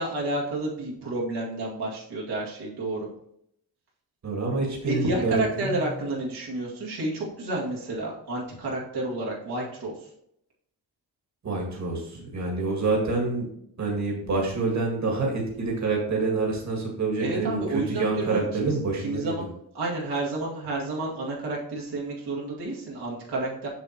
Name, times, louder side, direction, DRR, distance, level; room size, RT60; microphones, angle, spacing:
voice 1, 0.0-3.1 4.8-9.9 17.2-18.8 19.0-19.5 19.7-23.7, right 2 dB, 80° right, -4 dB, 2.1 m, -30 dB
voice 2, 4.2-5.8 11.4-13.5 13.8-19.3, right 3 dB, 45° right, -1 dB, 1.8 m, -27 dB
6.9 x 6.3 x 2.9 m, 0.73 s
cardioid pair, 95°, 39 cm